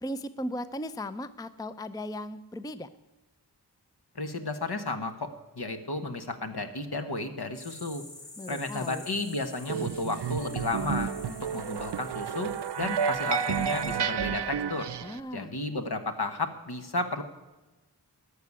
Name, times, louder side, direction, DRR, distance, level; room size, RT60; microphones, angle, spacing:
voice 1, 0.0-2.9 8.4-9.0 15.0-15.5, left 1 dB, 10° left, 13 dB, 0.5 m, -37 dB
voice 2, 4.1-8.0 8.5-14.9 15.3-17.2, left 2 dB, 65° left, 7 dB, 1.4 m, -33 dB
sound 1, 7.5-14.0, left 2 dB, 85° left, 2.1 m, -49 dB
sound 2, 9.7-15.2, right 7 dB, 75° right, 0.6 m, -31 dB
13.0 x 6.6 x 9.6 m, 1.1 s
wide cardioid pair, 65°, 42 cm